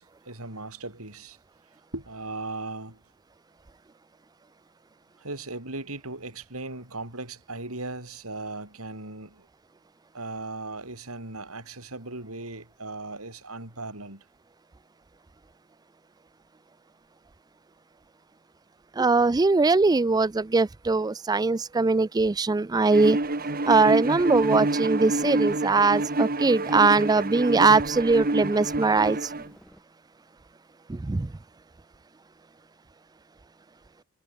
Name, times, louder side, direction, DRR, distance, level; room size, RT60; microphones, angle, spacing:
voice 1, 0.0-1.4 1.9-3.0 5.2-9.5 10.1-14.3, right 2 dB, 80° right, 7.6 m, -37 dB
voice 2, 19.0-23.2 23.6-29.3 30.9-31.3, right 3 dB, 20° right, 0.4 m, -21 dB
Bowed string instrument, 22.9-29.5, right 2 dB, 45° right, 2.0 m, -27 dB
sound 1, 23.2-29.8, equal, 5° left, 6.9 m, -54 dB
head